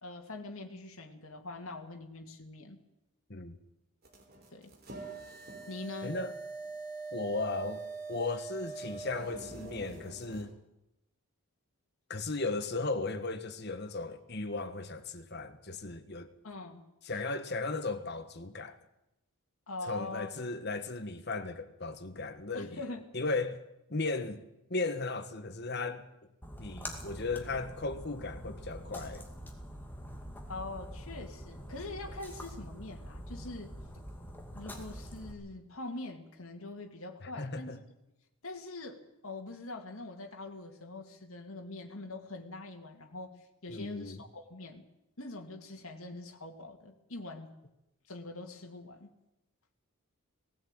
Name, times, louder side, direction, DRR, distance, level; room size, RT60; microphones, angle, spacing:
voice 1, 0.0-2.8 4.5-4.7 5.7-6.1 16.4-16.8 19.7-20.3 22.5-23.0 30.5-33.7 34.5-37.8 38.4-43.3 43.6-44.8 45.2-47.5 48.1-49.1, left 2 dB, 70° left, 2.3 m, -43 dB
sound 1, 4.0-10.4, right 3 dB, 45° right, 3.8 m, -43 dB
voice 2, 6.0-6.3 7.1-7.8 8.1-10.5 12.1-16.3 17.0-18.8 19.8-22.8 23.1-23.6 23.9-24.4 24.7-26.1 26.6-29.3 37.2-37.8 43.7-44.2, left 3 dB, 45° left, 1.5 m, -36 dB
Splash splatter, 26.4-35.3, equal, 10° left, 2.4 m, -45 dB
18.5 x 16.0 x 9.0 m
head